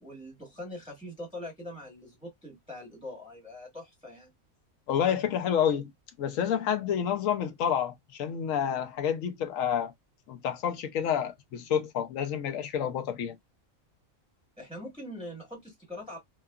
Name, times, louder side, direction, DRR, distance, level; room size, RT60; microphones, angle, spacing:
voice 1, 0.0-4.3 14.6-16.2, left 1 dB, 5° right, 1.2 m, -42 dB
voice 2, 4.9-5.9 6.2-9.9 10.3-13.4, left 8 dB, 80° left, 1.0 m, -29 dB
2.8 x 2.3 x 2.2 m
omnidirectional pair, 1.4 m